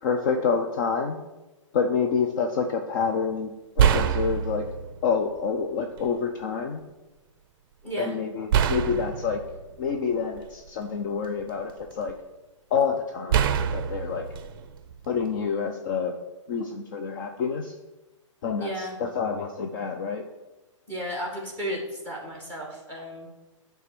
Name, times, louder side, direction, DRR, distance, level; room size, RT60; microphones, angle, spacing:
voice 1, 0.0-1.2 1.7-4.6 5.0-6.8 8.0-9.4 9.8-12.1 12.7-13.5 13.7-14.3 15.1-16.1 16.5-17.7 18.4-20.2, left 6 dB, 40° left, 4 dB, 0.6 m, -27 dB
sound 1, 3.0-3.2 3.8-5.1 6.0-6.1 8.5-10.7 11.2-12.1 13.3-15.4, right 8 dB, 45° right, 0.5 m, -25 dB
voice 2, 7.8-8.1 18.6-19.0 20.9-23.3, equal, 10° left, -1 dB, 1.9 m, -34 dB
9.3 x 3.5 x 6.0 m, 1.1 s
hypercardioid pair, 155°, 17 cm